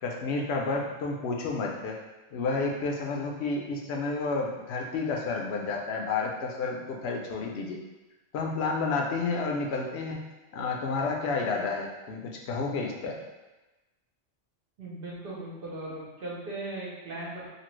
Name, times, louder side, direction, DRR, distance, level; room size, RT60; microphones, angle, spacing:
voice 1, 0.0-2.0 2.3-7.8 8.3-10.2 10.5-13.1, left 3 dB, 75° left, 0 dB, 0.8 m, -30 dB
voice 2, 14.8-17.5, right 2 dB, 60° right, -5 dB, 0.9 m, -38 dB
2.7 x 2.5 x 3.0 m, 1.1 s
omnidirectional pair, 1.1 m